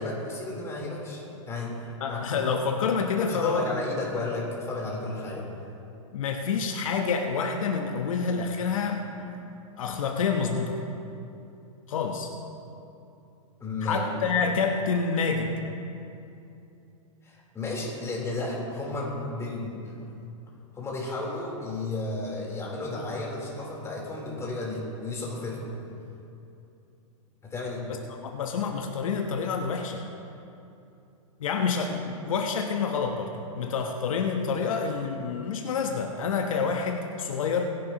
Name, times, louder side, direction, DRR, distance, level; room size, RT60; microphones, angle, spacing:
voice 1, 0.0-2.4 3.2-5.5 13.6-14.3 17.2-20.0 20.7-25.8 27.4-27.9, left 2 dB, 15° left, -4 dB, 3.7 m, -33 dB
voice 2, 2.0-3.7 6.1-9.3 9.8-10.8 11.9-12.3 13.8-15.5 28.2-30.0 31.4-37.7, left 5 dB, 75° left, 3 dB, 1.1 m, -28 dB
24.5 x 11.0 x 3.0 m, 2.7 s
hypercardioid pair, 120°, 17 cm